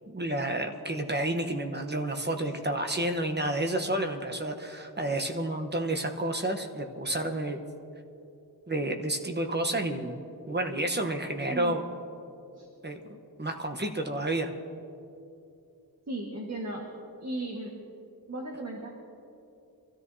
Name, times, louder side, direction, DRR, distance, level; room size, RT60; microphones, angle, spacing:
voice 1, 0.1-7.6 8.7-11.8 12.8-13.0 13.4-14.5, right 1 dB, 30° right, 4 dB, 1.0 m, -30 dB
voice 2, 16.1-16.9 17.2-17.8 18.3-18.9, right 2 dB, 45° right, -2 dB, 1.6 m, -36 dB
25.5 x 13.5 x 2.8 m, 2.7 s
wide cardioid pair, 95°, 37 cm